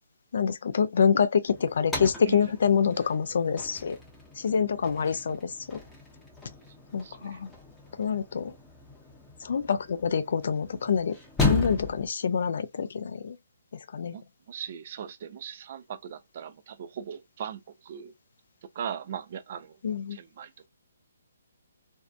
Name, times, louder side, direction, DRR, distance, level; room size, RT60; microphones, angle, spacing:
voice 1, 0.3-4.0 4.4-5.8 6.9-7.5 8.0-8.5 9.4-13.4 13.9-14.2 19.8-20.2, left 6 dB, 60° left, 0.3 m, -26 dB
sound 1, 1.5-12.1, left 3 dB, 5° left, 0.7 m, -35 dB
voice 2, 7.0-7.4 14.1-18.1 18.8-19.8 20.1-20.7, right 8 dB, 40° right, 0.4 m, -39 dB
2.6 x 2.1 x 2.4 m
hypercardioid pair, 160°, 0 cm